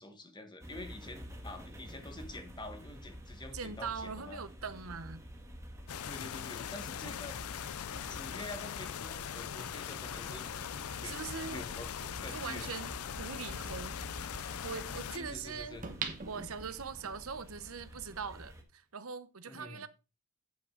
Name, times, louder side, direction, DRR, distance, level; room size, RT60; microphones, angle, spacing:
voice 1, 0.0-4.4 6.1-7.4 7.9-10.5 10.9-11.2 11.5-11.9 12.2-12.7 15.1-15.8 19.5-19.8, left 2 dB, 20° left, 1.4 m, -47 dB
sound 1, 0.6-18.6, equal, 15° right, 1.6 m, -48 dB
voice 2, 3.5-5.2 11.0-11.6 12.0-14.0 14.6-15.8 16.3-19.9, right 5 dB, 75° right, 0.9 m, -42 dB
sound 2, 5.9-15.2, left 9 dB, 85° left, 0.5 m, -41 dB
sound 3, 15.8-17.1 17.6-17.7, right 5 dB, 35° right, 1.2 m, -40 dB
8.6 x 7.5 x 3.9 m
head